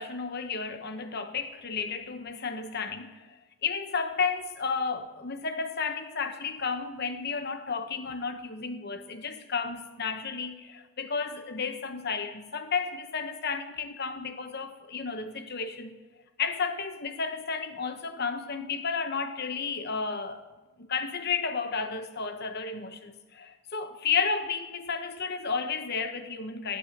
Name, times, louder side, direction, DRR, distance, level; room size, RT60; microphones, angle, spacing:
voice 1, 0.0-15.9 16.4-20.4 20.8-26.8, left 5 dB, 50° left, 8 dB, 1.0 m, -32 dB
15.0 x 11.0 x 6.5 m, 1.2 s
head